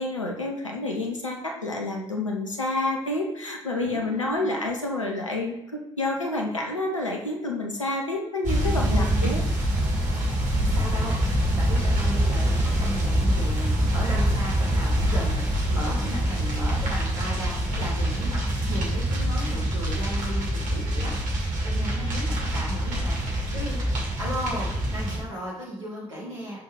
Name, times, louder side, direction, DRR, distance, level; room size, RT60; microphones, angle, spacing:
voice 1, 0.0-9.4, left 2 dB, 90° left, 1 dB, 0.7 m, -29 dB
voice 2, 3.6-4.5 8.9-9.4 10.5-23.8 24.2-26.6, right 1 dB, 80° right, -5 dB, 1.5 m, -36 dB
sound 1, 8.4-25.2, equal, 55° right, 2.0 m, -25 dB
5.4 x 4.6 x 4.8 m, 0.95 s
figure-of-eight pair, 45°, 16 cm